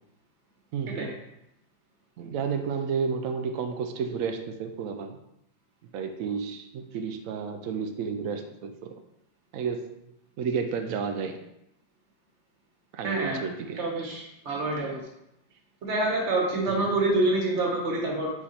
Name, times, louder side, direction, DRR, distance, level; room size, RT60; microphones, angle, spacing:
voice 1, 0.7-1.2 2.2-5.2 5.9-9.0 9.5-10.0 10.4-11.4 12.9-13.8 16.7-16.9, right 6 dB, 90° right, 5 dB, 0.7 m, -31 dB
voice 2, 13.0-13.4 13.8-15.0 15.8-18.3, right 2 dB, 40° right, -1 dB, 1.5 m, -27 dB
4.9 x 4.9 x 4.2 m, 0.83 s
omnidirectional pair, 2.1 m